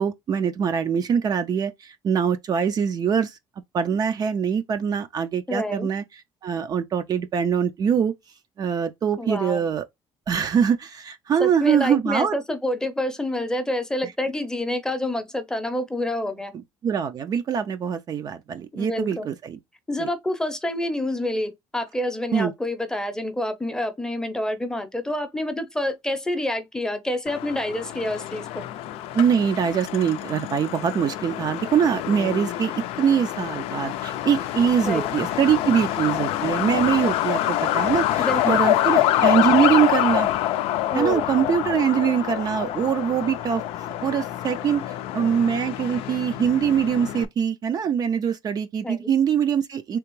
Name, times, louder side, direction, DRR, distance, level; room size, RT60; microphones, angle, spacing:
voice 1, 0.0-3.4 3.7-6.0 6.4-8.1 8.6-9.8 10.3-12.4 14.0-14.1 16.5-19.6 20.0-20.1 22.3-22.5 29.1-40.3 40.9-43.6 44.0-50.0, right 8 dB, 40° right, 0.4 m, -23 dB
voice 2, 5.5-5.9 9.2-9.7 11.4-16.5 18.8-19.3 19.9-28.6 34.9-35.1 38.2-38.6 40.9-41.2 48.8-49.1, left 1 dB, 5° left, 0.6 m, -27 dB
Truck, 27.3-47.3, left 13 dB, 85° left, 0.4 m, -26 dB
3.4 x 2.8 x 3.1 m
cardioid pair, 120°, 10 cm